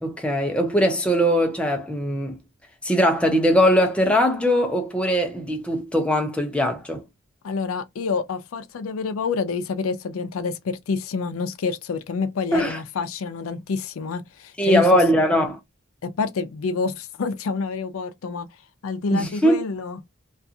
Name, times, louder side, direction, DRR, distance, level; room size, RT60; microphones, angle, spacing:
voice 1, 0.0-2.4 2.8-7.0 12.5-12.8 14.6-15.6 19.1-19.6, equal, 5° left, 0.6 m, -20 dB
voice 2, 7.4-14.8 16.0-18.5 18.8-20.0, left 4 dB, 85° left, 0.4 m, -28 dB
2.4 x 2.3 x 2.7 m
head